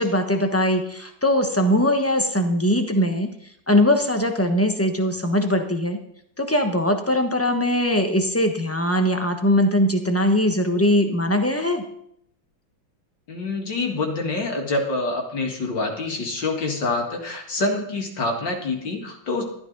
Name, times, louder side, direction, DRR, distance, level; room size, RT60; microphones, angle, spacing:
voice 1, 0.0-3.3 3.7-6.0 6.4-11.8, left 1 dB, 10° left, 5 dB, 0.8 m, -21 dB
voice 2, 13.3-19.4, left 2 dB, 60° left, 2 dB, 2.7 m, -26 dB
14.0 x 12.5 x 4.0 m, 0.71 s
omnidirectional pair, 2.2 m